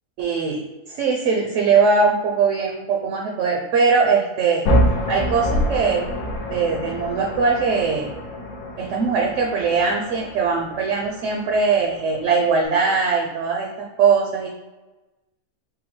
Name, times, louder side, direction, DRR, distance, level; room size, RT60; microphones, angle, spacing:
voice 1, 0.2-4.6 5.1-6.0 6.5-8.1 8.8-14.5, right 5 dB, 70° right, 0 dB, 0.9 m, -21 dB
sound 1, 4.7-12.7, equal, 80° left, 1.1 m, -26 dB
3.8 x 2.0 x 4.2 m, 1.1 s
omnidirectional pair, 1.5 m